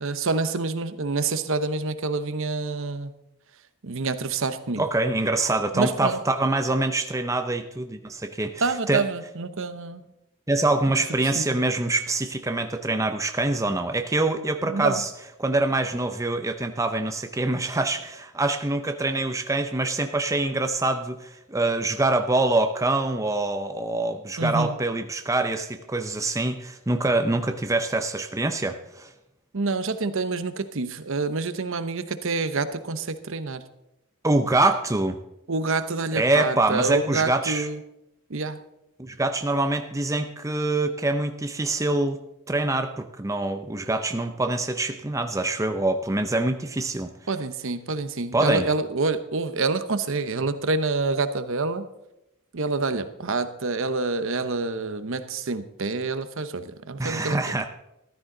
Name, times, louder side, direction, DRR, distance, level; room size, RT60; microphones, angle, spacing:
voice 1, 0.0-3.1 3.8-4.8 5.7-6.2 8.6-10.0 11.3-11.6 14.6-15.0 24.4-24.8 29.5-33.6 35.5-37.8 38.3-38.6 47.3-51.8 52.5-57.4, right 3 dB, 60° right, 11 dB, 0.9 m, -27 dB
voice 2, 4.8-9.0 10.5-15.1 15.4-29.1 34.2-35.2 36.1-37.7 39.0-42.2 42.5-47.1 48.3-48.7 57.0-57.6, right 2 dB, 15° right, 6 dB, 0.6 m, -25 dB
14.0 x 12.5 x 3.9 m, 0.88 s
head